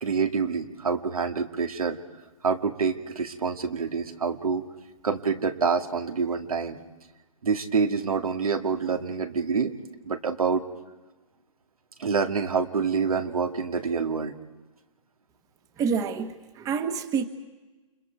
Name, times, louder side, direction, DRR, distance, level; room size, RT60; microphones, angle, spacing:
voice 1, 0.0-2.0 2.4-4.6 5.0-6.8 7.4-9.7 10.0-10.6 12.0-14.3, right 5 dB, 85° right, 6 dB, 2.3 m, -26 dB
voice 2, 15.8-17.3, right 6 dB, 20° right, 10 dB, 1.2 m, -28 dB
29.5 x 28.0 x 4.7 m, 1.2 s
hypercardioid pair, 135°, 18 cm